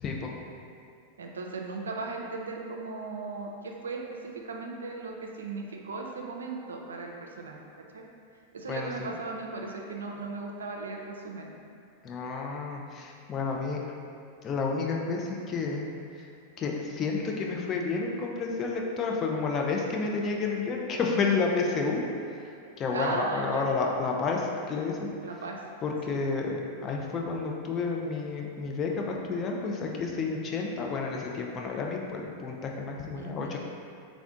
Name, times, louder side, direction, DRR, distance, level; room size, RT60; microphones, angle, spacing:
voice 1, 1.2-7.6 7.9-8.1 8.5-11.6 22.9-23.7 25.2-25.7 26.1-26.2 33.2-33.6, right 3 dB, 85° right, 1 dB, 0.4 m, -37 dB
voice 2, 12.0-13.8 14.4-15.8 16.2-16.3 16.6-22.0 22.8-25.1 25.8-26.5 26.8-33.6, left 4 dB, 35° left, 0 dB, 0.5 m, -30 dB
3.5 x 2.5 x 3.5 m, 2.5 s
hypercardioid pair, 100°, 0 cm